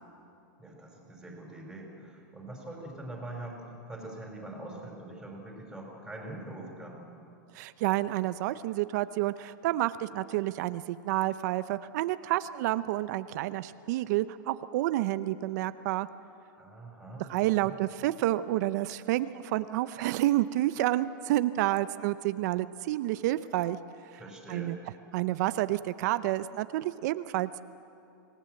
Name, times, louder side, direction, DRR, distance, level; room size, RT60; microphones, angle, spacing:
voice 1, 0.6-7.0 16.6-17.3 17.5-17.8 24.1-24.8, right 2 dB, ahead, -1 dB, 4.9 m, -43 dB
voice 2, 7.5-16.1 17.2-23.8 24.5-24.8 25.1-27.6, right 15 dB, 55° right, 14 dB, 0.7 m, -29 dB
26.5 x 18.0 x 7.8 m, 2.7 s
supercardioid pair, 140°, 11 cm